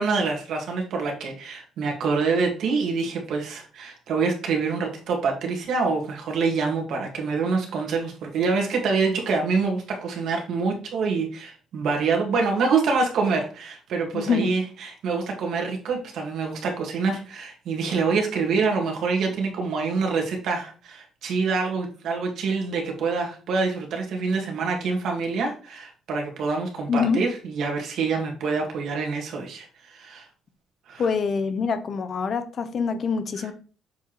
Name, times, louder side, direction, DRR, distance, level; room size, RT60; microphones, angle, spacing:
voice 1, 0.0-30.3 30.9-31.0, right 4 dB, 65° right, 1.8 m, -26 dB
voice 2, 14.1-14.5 26.9-27.2 31.0-33.5, left 5 dB, 40° left, 0.6 m, -25 dB
7.1 x 4.6 x 3.1 m
cardioid pair, 155°, 0 cm